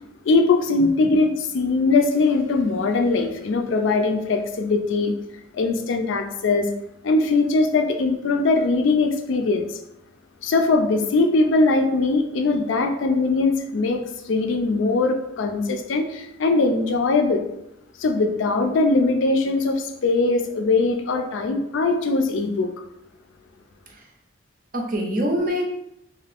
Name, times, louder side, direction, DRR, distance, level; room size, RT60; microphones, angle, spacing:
voice 1, 0.3-5.1 5.5-6.7 7.0-9.7 10.4-17.4 18.0-22.7, left 3 dB, 70° left, 5 dB, 0.4 m, -21 dB
voice 2, 0.8-1.1 23.9-24.1 24.7-25.7, equal, 45° right, 0 dB, 0.6 m, -26 dB
2.6 x 2.4 x 3.3 m, 0.81 s
head